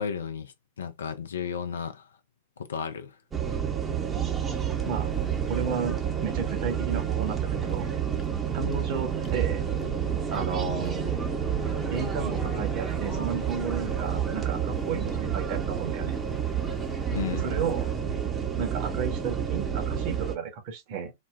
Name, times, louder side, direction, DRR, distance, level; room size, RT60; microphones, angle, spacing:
voice 1, 0.0-2.1 2.6-3.2 17.1-17.4, left 7 dB, 70° left, 0.6 m, -33 dB
sound 1, 3.3-20.4, right 8 dB, 20° right, 0.8 m, -29 dB
sound 2, 4.7-17.9, left 2 dB, 20° left, 0.8 m, -43 dB
voice 2, 5.5-7.9 8.5-9.6 10.3-11.2 11.9-16.2 17.3-17.9 18.6-21.1, right 6 dB, 45° right, 1.1 m, -33 dB
4.1 x 2.2 x 2.3 m
figure-of-eight pair, 95°, 0 cm